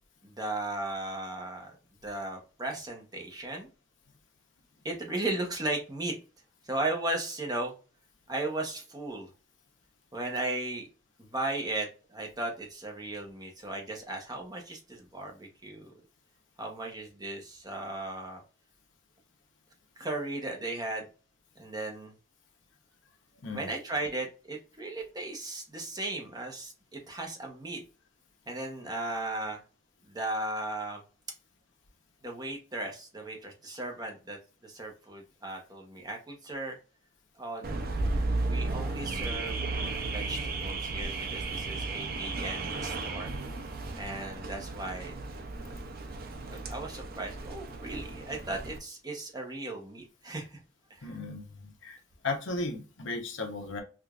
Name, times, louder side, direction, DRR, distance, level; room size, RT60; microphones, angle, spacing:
voice 1, 0.2-1.7 2.0-3.7 4.8-6.2 6.6-7.7 8.3-9.3 10.1-10.9 11.2-15.9 16.6-18.4 20.0-21.1 21.6-22.1 23.5-27.8 28.5-29.6 30.1-31.0 32.2-36.8 37.4-37.7 38.5-39.6 40.1-43.3 44.0-45.1 45.6-45.8 46.5-50.6 50.9-51.1, right 2 dB, 20° right, 1 dB, 0.9 m, -36 dB
Car / Alarm, 37.6-48.8, right 3 dB, 50° right, 0.6 m, -34 dB
voice 2, 51.0-52.0 52.2-53.8, left 3 dB, 65° left, 3 dB, 0.9 m, -35 dB
4.7 x 2.5 x 2.4 m, 0.35 s
head